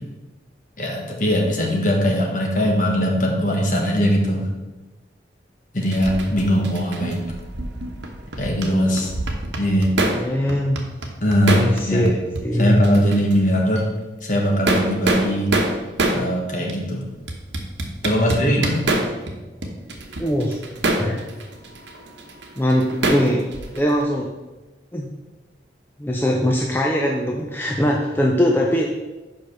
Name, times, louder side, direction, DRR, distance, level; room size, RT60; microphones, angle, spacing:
voice 1, 0.8-4.5 5.7-7.3 8.4-9.1 9.6-9.9 11.2-12.1 12.6-13.9 14.2-15.5 16.1-17.0 18.0-18.8, equal, 45° left, -1 dB, 1.4 m, -20 dB
sound 1, 5.9-8.7 9.0-10.2 10.5-12.1 12.3-12.4 12.8-13.4 13.7-13.8 14.4-16.2 16.7-16.8 17.3-19.3 19.6-24.0, right 2 dB, 75° right, 1.1 m, -25 dB
voice 2, 10.1-10.8 11.6-12.2 12.4-12.8 20.2-20.6 21.0-21.2 22.6-23.5 23.7-24.3 24.9-25.1 26.0-28.9, equal, 10° left, -1 dB, 0.5 m, -21 dB
5.5 x 5.2 x 6.3 m, 1.1 s
head